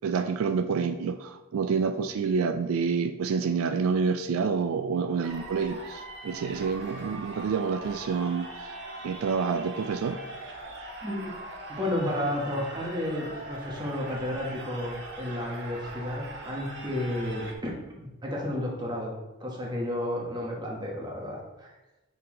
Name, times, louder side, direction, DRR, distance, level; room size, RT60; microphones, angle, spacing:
voice 1, 0.0-8.8 9.0-10.2, right 5 dB, 75° right, 9 dB, 0.3 m, -28 dB
sound 1, 5.2-17.5, right 1 dB, 55° right, 0.8 m, -41 dB
voice 2, 11.0-11.3 11.7-19.1 19.4-21.7, left 1 dB, 20° right, -2 dB, 1.2 m, -32 dB
6.7 x 4.0 x 3.7 m, 1.1 s
head